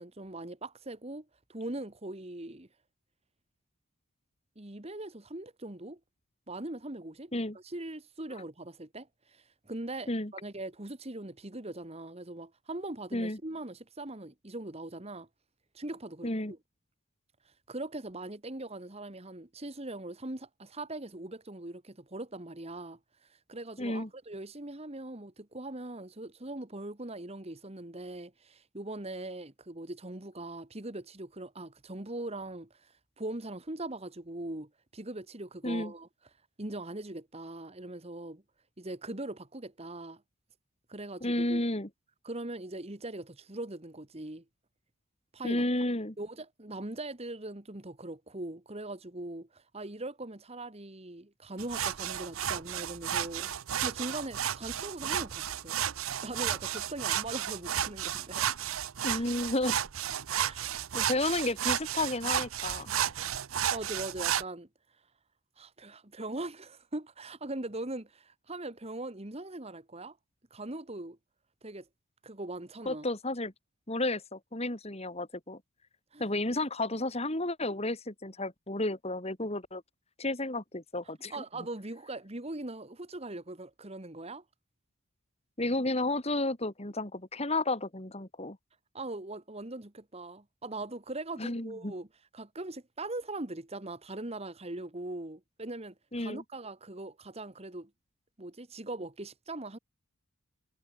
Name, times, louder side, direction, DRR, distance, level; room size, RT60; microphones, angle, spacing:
voice 1, 0.0-2.7 4.6-6.0 6.5-7.3 7.6-15.3 15.7-16.6 17.5-36.1 36.6-38.4 38.8-40.2 40.9-41.7 42.2-44.4 45.3-45.6 46.2-53.5 53.8-55.8 56.1-58.8 59.1-59.3 60.3-60.6 63.7-64.7 65.6-70.2 70.5-71.2 71.6-71.9 72.2-73.0 76.1-76.3 81.3-84.4 88.9-92.1 92.3-97.9 98.4-99.8, right 2 dB, 30° right, 1.7 m, -41 dB
voice 2, 16.2-16.5 23.8-24.1 35.6-35.9 41.2-41.9 45.4-46.1 59.0-59.8 60.9-62.9 72.8-73.5 73.9-75.6 76.2-79.8 80.2-81.4 85.6-88.6 91.4-91.9 96.1-96.4, left 2 dB, 30° left, 3.1 m, -32 dB
sound 1, 51.6-64.4, right 10 dB, 80° right, 0.8 m, -33 dB
head